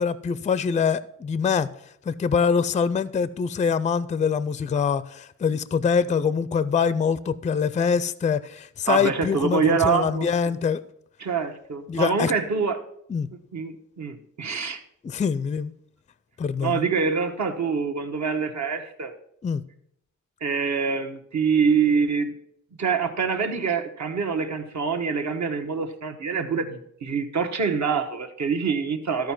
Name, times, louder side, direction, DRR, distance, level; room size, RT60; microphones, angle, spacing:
voice 1, 0.0-1.7 2.1-10.8 11.9-12.3 13.1-13.3 15.0-15.7 16.4-16.9 19.4-19.6, left 6 dB, 25° left, 16 dB, 0.4 m, -24 dB
voice 2, 8.9-10.3 11.2-12.8 13.5-14.8 16.6-19.1 20.4-22.3 22.8-29.3, right 5 dB, 60° right, 5 dB, 1.3 m, -25 dB
13.5 x 4.7 x 6.0 m, 0.73 s
wide cardioid pair, 125°, 31 cm